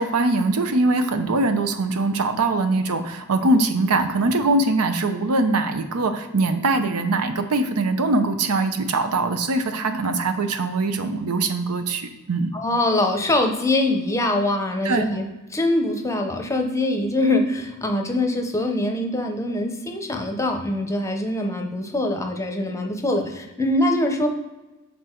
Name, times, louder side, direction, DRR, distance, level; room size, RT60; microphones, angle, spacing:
voice 1, 0.0-12.5 14.8-15.1, right 2 dB, 90° right, 8 dB, 0.7 m, -22 dB
voice 2, 12.5-24.3, left 1 dB, 15° left, 3 dB, 0.7 m, -23 dB
6.7 x 4.0 x 4.4 m, 1.1 s
head